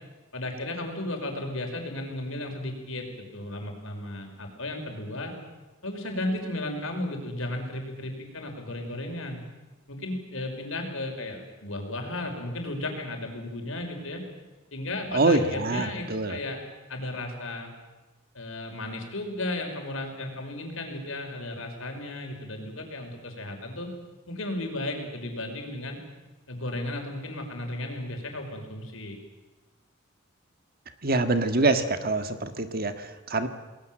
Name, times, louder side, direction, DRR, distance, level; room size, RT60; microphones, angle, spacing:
voice 1, 0.3-5.3 5.8-9.4 9.9-14.2 14.7-16.6 16.9-17.7 18.3-23.9 24.3-26.0 26.5-29.2, left 1 dB, 75° left, 3 dB, 5.5 m, -34 dB
voice 2, 15.1-16.4 31.0-33.5, right 2 dB, 45° right, 8 dB, 1.7 m, -25 dB
29.0 x 19.5 x 7.7 m, 1.2 s
head